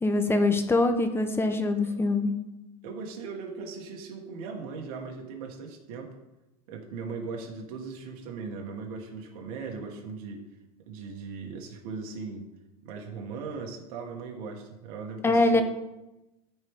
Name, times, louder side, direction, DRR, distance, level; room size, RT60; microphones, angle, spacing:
voice 1, 0.0-2.3 15.2-15.6, left 2 dB, 10° left, 7 dB, 0.9 m, -23 dB
voice 2, 2.8-6.2 6.7-10.4 10.9-12.5 12.8-15.6, right 4 dB, 70° right, 1 dB, 1.8 m, -38 dB
13.5 x 4.7 x 3.8 m, 0.97 s
supercardioid pair, 120°, 19 cm